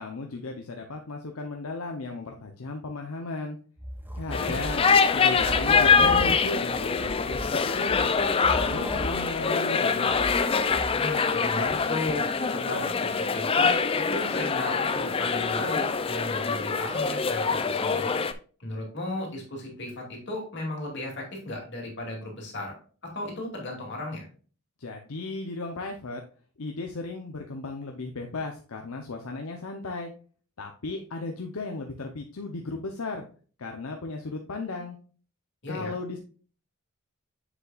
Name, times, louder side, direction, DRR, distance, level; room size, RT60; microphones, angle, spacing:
voice 1, 0.0-3.6 4.2-8.1 8.5-10.2 24.8-26.2 26.6-30.1 30.6-33.3 33.6-35.0 35.7-36.2, left 3 dB, 75° left, 3 dB, 0.8 m, -35 dB
sound 1, 3.8-11.3 11.6-11.8, equal, 10° right, 0.7 m, -37 dB
sound 2, 4.3-18.3, left 5 dB, 25° left, 0.4 m, -24 dB
voice 2, 10.9-13.8 14.1-18.1 18.6-22.7 23.1-24.3 35.6-35.9, left 1 dB, 50° left, -1 dB, 2.6 m, -35 dB
7.4 x 6.6 x 2.4 m, 0.40 s
head